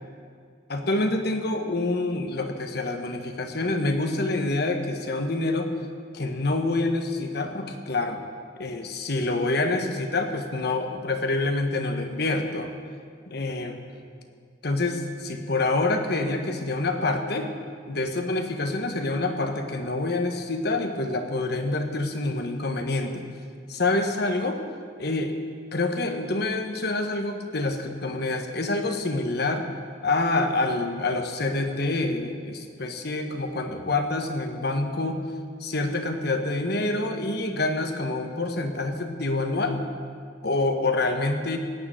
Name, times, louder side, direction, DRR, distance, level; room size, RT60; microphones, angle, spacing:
voice 1, 0.7-5.7 6.1-8.2 8.6-12.7 13.3-13.8 14.6-17.5 17.9-23.2 23.7-24.6 25.0-25.4 25.7-29.6 30.0-35.2 35.6-39.9 40.4-41.6, left 2 dB, 55° left, 5 dB, 1.3 m, -27 dB
17.5 x 6.9 x 9.0 m, 2.1 s
head